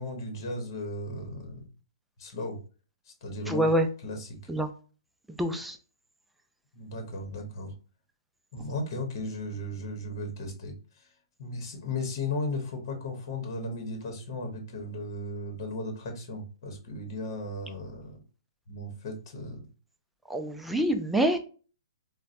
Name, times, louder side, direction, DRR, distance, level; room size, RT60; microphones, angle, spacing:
voice 1, 0.0-1.7 2.2-2.6 3.0-3.7 4.0-4.4 6.7-7.7 8.5-11.1 11.4-18.2 18.7-19.7, left 2 dB, 50° left, 3 dB, 1.0 m, -36 dB
voice 2, 3.5-3.9 4.5-4.7 5.3-5.8 20.3-21.4, right 1 dB, 5° right, 5 dB, 0.4 m, -26 dB
3.9 x 2.2 x 2.5 m, 0.37 s
hypercardioid pair, 135°, 3 cm